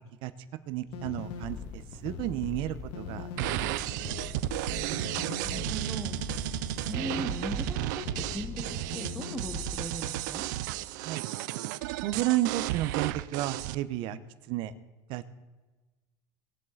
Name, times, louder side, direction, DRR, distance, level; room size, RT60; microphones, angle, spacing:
voice 1, 0.7-3.9 11.0-11.2 12.0-14.2 14.5-14.7 15.1-15.3, right 15 dB, 60° right, 13 dB, 0.8 m, -32 dB
sound 1, 0.9-9.8, left 7 dB, 70° left, 1.2 m, -40 dB
sound 2, 1.2-7.4, equal, 50° left, 2.6 m, -51 dB
sound 3, 3.4-13.7, right 16 dB, 85° right, 0.5 m, -33 dB
voice 2, 5.2-6.1 6.9-10.4, equal, ahead, 6 dB, 1.0 m, -39 dB
19.5 x 7.7 x 3.9 m, 1.2 s
supercardioid pair, 130°, 10 cm